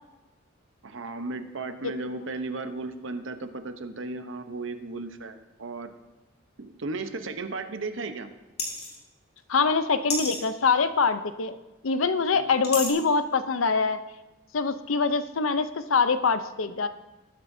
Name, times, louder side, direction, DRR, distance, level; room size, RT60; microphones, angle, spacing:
voice 1, 0.8-5.9 6.6-8.3 12.3-12.6, right 3 dB, 65° right, 9 dB, 0.9 m, -35 dB
sound 1, 8.6-9.0 10.1-10.4 12.6-12.9, left 3 dB, 30° left, 2.4 m, -30 dB
voice 2, 9.5-11.6 11.8-14.0 14.5-16.9, left 4 dB, 75° left, 11 dB, 0.7 m, -24 dB
19.5 x 9.7 x 2.7 m, 1.1 s
head